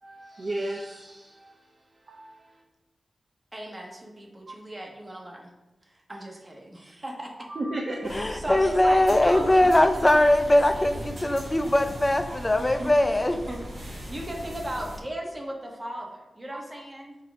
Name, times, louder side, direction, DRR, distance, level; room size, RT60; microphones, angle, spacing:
voice 1, 0.0-2.4 4.5-4.6 7.5-8.2 9.3-9.5 12.3-12.6 16.5-16.6, right 1 dB, 50° right, -1 dB, 0.7 m, -35 dB
voice 2, 3.5-5.5 6.1-6.7 7.0-7.3 8.3-10.3 12.6-12.9 13.5-17.2, right 1 dB, 25° right, 0 dB, 1.1 m, -36 dB
sound 1, 8.0-15.0, equal, 90° right, 1.8 m, -39 dB
voice 3, 8.1-13.4, left 1 dB, 20° left, 8 dB, 0.5 m, -21 dB
7.3 x 2.8 x 4.7 m, 1.0 s
wide cardioid pair, 85°, 0 cm